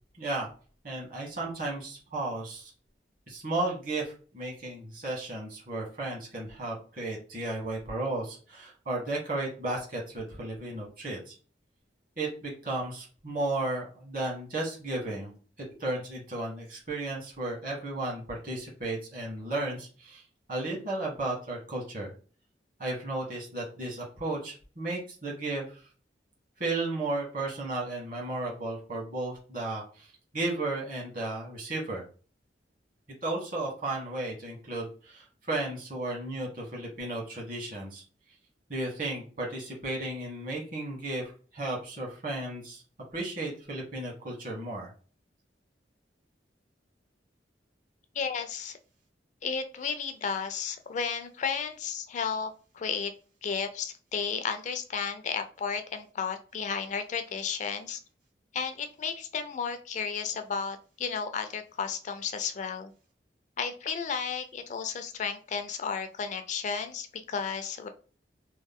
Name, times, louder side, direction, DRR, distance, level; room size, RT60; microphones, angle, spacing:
voice 1, 0.2-0.5 0.8-2.7 3.3-11.3 12.2-15.3 15.8-22.1 22.8-25.9 26.6-32.0 33.2-38.0 38.7-42.8 43.1-44.9, right 2 dB, 50° right, -2 dB, 1.4 m, -34 dB
voice 2, 48.1-48.8 49.4-53.1 53.4-58.0 58.5-62.9 63.6-67.9, left 6 dB, 40° left, 8 dB, 0.3 m, -33 dB
3.1 x 2.1 x 3.5 m, 0.39 s
head